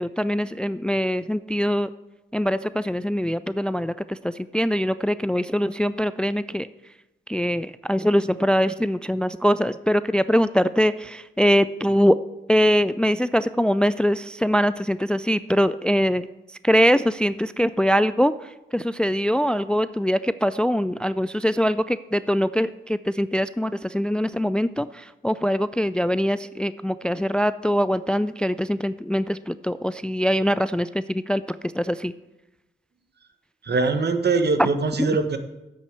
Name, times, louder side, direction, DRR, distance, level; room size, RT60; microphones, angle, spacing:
voice 1, 0.0-1.9 2.3-6.7 7.3-12.2 12.5-16.3 16.6-18.3 18.7-31.4 31.7-32.1 34.6-34.7, equal, 5° left, 15 dB, 0.3 m, -22 dB
voice 2, 33.6-35.4, right 4 dB, 55° right, 8 dB, 1.3 m, -22 dB
8.3 x 6.5 x 8.1 m, 0.98 s
supercardioid pair, 45°, 21 cm